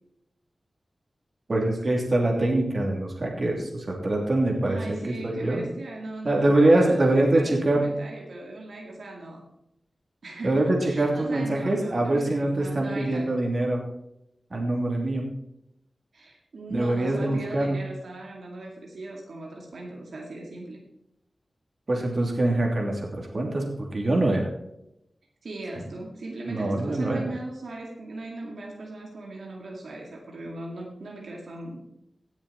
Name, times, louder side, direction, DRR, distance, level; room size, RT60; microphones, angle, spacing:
voice 1, 1.5-5.6 6.2-8.0 10.4-13.8 14.5-15.2 16.7-17.8 21.9-24.5 26.5-27.3, right 1 dB, 50° right, 0 dB, 2.9 m, -24 dB
voice 2, 4.6-9.5 10.2-13.3 16.1-20.8 25.4-31.8, right 2 dB, 85° right, -1 dB, 2.3 m, -38 dB
17.0 x 7.1 x 4.3 m, 0.82 s
wide cardioid pair, 90°, 0 cm